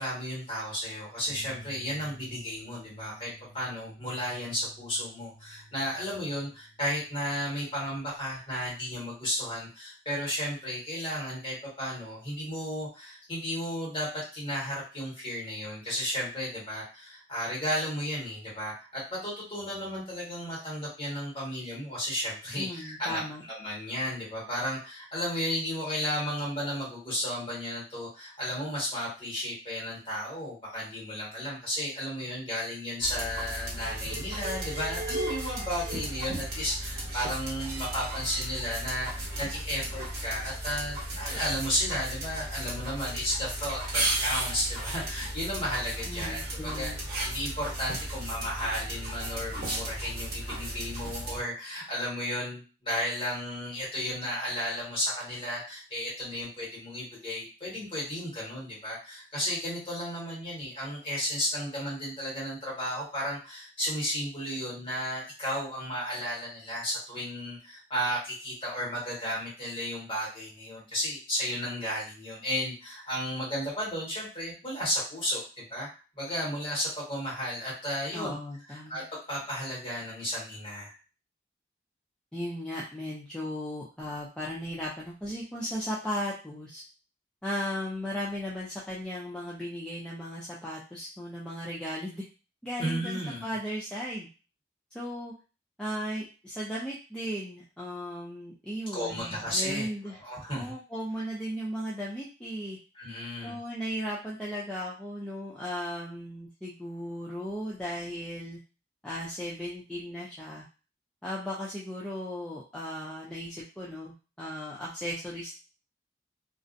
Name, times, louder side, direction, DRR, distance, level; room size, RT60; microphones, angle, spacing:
voice 1, 0.0-23.2 23.5-46.9 47.2-75.9 76.2-78.3 78.7-79.0 79.3-80.9 92.8-93.4 98.9-99.9 100.2-100.7 102.9-103.6, equal, 30° left, -6 dB, 1.3 m, -33 dB
sound 1, 1.3-8.2, right 1 dB, 80° left, 0.9 m, -52 dB
voice 2, 22.6-23.4 46.1-47.0 78.1-79.0 82.3-86.8 87.4-92.2 92.6-94.3 94.9-95.3 95.8-100.2 100.5-102.8 103.4-108.6 109.0-110.6 111.2-115.5, equal, 5° left, -6 dB, 0.3 m, -36 dB
sound 2, 33.0-51.4, right 1 dB, 55° right, 1.0 m, -35 dB
2.5 x 2.0 x 2.5 m, 0.33 s
head